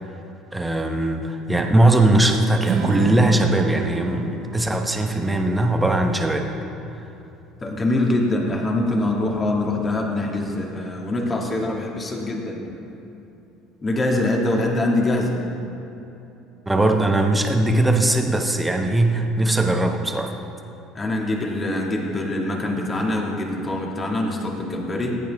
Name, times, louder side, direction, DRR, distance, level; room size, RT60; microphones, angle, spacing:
voice 1, 0.5-6.5 16.7-20.3, right 1 dB, 10° right, 3 dB, 1.2 m, -20 dB
Strum, 2.6-8.9, right 4 dB, 55° right, 1.2 m, -30 dB
voice 2, 7.6-12.6 13.8-15.4 20.9-25.2, left 1 dB, 30° left, -1 dB, 2.2 m, -24 dB
15.0 x 8.9 x 3.6 m, 2.9 s
hypercardioid pair, 75°, 0 cm